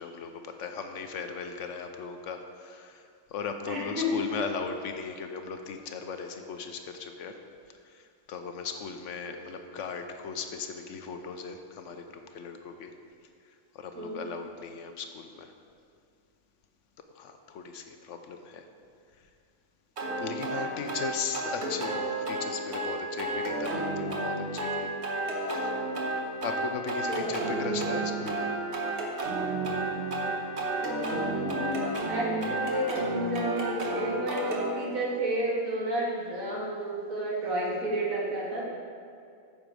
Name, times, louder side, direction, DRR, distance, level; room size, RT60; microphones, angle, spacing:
voice 1, 0.0-7.4 7.8-12.9 13.5-15.5 17.1-18.7 19.2-19.3 20.2-24.9 25.3-25.7 26.4-28.5, left 5 dB, 70° left, 6 dB, 1.0 m, -38 dB
voice 2, 3.7-4.2 13.9-14.3 20.5-20.9 27.1-27.4 30.8-38.7, right 1 dB, 90° right, -4 dB, 2.2 m, -32 dB
sound 1, 20.0-34.7, right 2 dB, 55° right, 1.3 m, -31 dB
9.0 x 6.9 x 4.8 m, 2.3 s
omnidirectional pair, 1.4 m